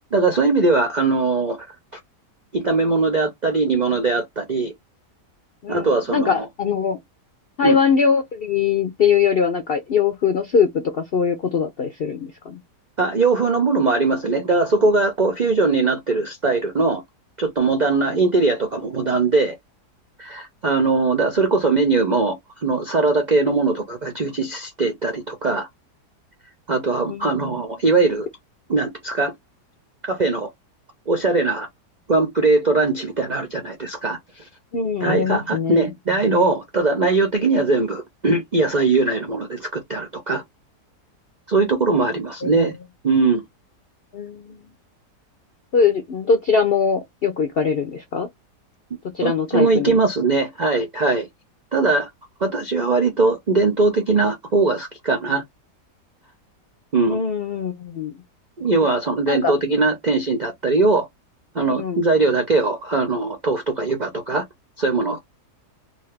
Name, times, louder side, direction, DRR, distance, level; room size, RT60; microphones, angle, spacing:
voice 1, 0.1-1.6 2.5-4.7 5.7-6.5 7.6-7.8 13.0-17.0 17.4-19.6 20.2-22.4 22.6-25.7 26.7-28.3 28.7-29.3 30.0-30.5 31.1-31.7 32.1-34.4 35.0-40.4 41.5-42.8 43.0-43.4 49.2-51.3 51.7-52.1 52.4-55.4 56.9-57.2 58.6-61.1 61.5-64.4 64.8-65.2, right 3 dB, 55° right, 0.4 m, -20 dB
voice 2, 5.6-7.0 7.6-12.6 27.1-27.7 34.7-35.8 42.4-42.5 44.1-44.6 45.7-48.3 49.1-50.0 57.1-58.1 59.3-59.5 61.6-62.0, left 6 dB, 65° left, 0.5 m, -22 dB
2.7 x 2.5 x 3.2 m
omnidirectional pair, 1.8 m